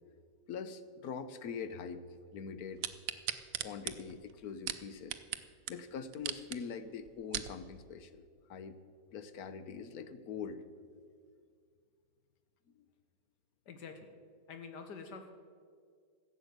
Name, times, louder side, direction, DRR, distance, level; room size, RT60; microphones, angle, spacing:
voice 1, 0.5-2.0 2.3-2.8 3.6-5.2 5.7-8.8 9.1-10.8 12.8-12.9, left 6 dB, 65° left, 12 dB, 1.2 m, -43 dB
sound 1, 2.8-5.4 5.7-5.8 6.1-6.6 7.1-7.5 8.2-8.3, right 11 dB, 65° right, 1.0 m, -38 dB
voice 2, 13.6-14.1 14.5-15.3, left 5 dB, 85° left, 6 dB, 1.6 m, -47 dB
14.5 x 8.0 x 7.9 m, 2.1 s
omnidirectional pair, 1.8 m